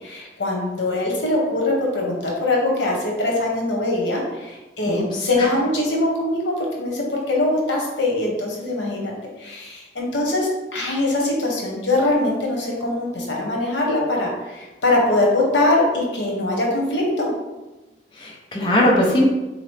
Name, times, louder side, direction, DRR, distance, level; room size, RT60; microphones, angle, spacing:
voice 1, 0.0-9.1 9.4-17.3, left 2 dB, 90° left, -1 dB, 1.0 m, -22 dB
voice 2, 4.9-5.5 18.2-19.2, left 1 dB, 25° left, -3 dB, 0.5 m, -20 dB
3.8 x 2.9 x 3.2 m, 1.1 s
head